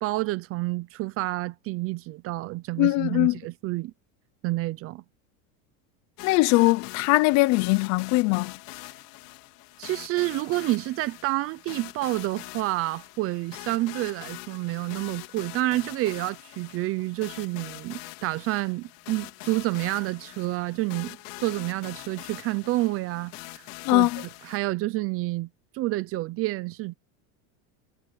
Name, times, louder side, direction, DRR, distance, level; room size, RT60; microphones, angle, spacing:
voice 1, 0.0-3.9 4.4-5.0 9.8-23.6 23.9-25.5 25.7-27.0, right 18 dB, 30° right, 0.4 m, -29 dB
voice 2, 2.8-3.4 6.2-8.5 23.8-24.2, left 22 dB, 40° left, 0.5 m, -21 dB
sound 1, 6.2-24.6, left 22 dB, 80° left, 3.7 m, -43 dB
supercardioid pair, 155°, 47 cm